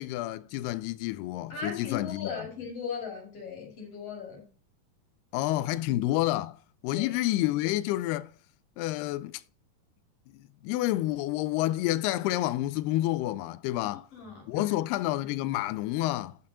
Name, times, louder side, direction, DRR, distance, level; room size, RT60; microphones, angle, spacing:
voice 1, 0.0-2.3 5.3-8.3 8.8-9.4 10.3-14.0 14.5-16.4, left 16 dB, 85° left, 2.6 m, -29 dB
voice 2, 1.5-4.5 6.9-7.1 14.1-14.8, left 6 dB, 45° left, 3.1 m, -38 dB
9.3 x 5.8 x 5.4 m
omnidirectional pair, 4.5 m